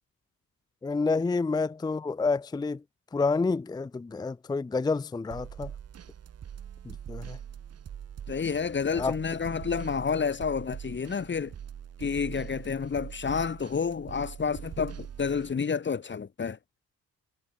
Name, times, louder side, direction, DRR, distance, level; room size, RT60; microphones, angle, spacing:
voice 1, 0.8-2.8 3.1-5.7 6.8-7.4 8.9-9.2, left 4 dB, 15° left, 0.5 m, -29 dB
sound 1, 5.3-15.5, right 9 dB, 55° right, 2.3 m, -43 dB
voice 2, 8.3-11.5 12.0-16.6, left 6 dB, 40° left, 2.8 m, -30 dB
cardioid pair, 90°, 30 cm